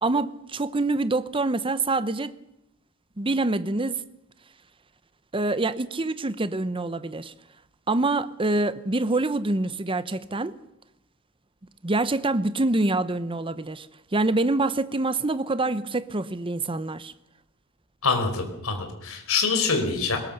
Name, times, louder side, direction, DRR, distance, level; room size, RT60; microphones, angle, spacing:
voice 1, 0.0-2.3 3.2-4.0 5.3-7.3 7.9-10.5 11.8-13.9 14.1-17.1, right 2 dB, 25° right, 0.8 m, -25 dB
voice 2, 18.0-20.2, left 4 dB, 70° left, 4.7 m, -25 dB
21.5 x 19.5 x 6.7 m
head